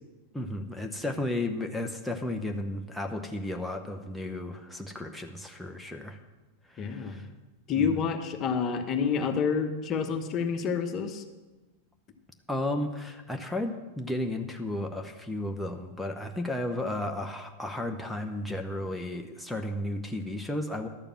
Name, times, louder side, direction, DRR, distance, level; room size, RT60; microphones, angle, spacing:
voice 1, 0.3-6.2 6.7-7.3 7.8-8.0 12.5-20.9, left 1 dB, ahead, 2 dB, 0.8 m, -33 dB
voice 2, 6.8-7.2 7.7-11.2, left 6 dB, 30° left, 7 dB, 1.1 m, -28 dB
12.0 x 6.9 x 7.4 m, 1.2 s
figure-of-eight pair, 90°, 0 cm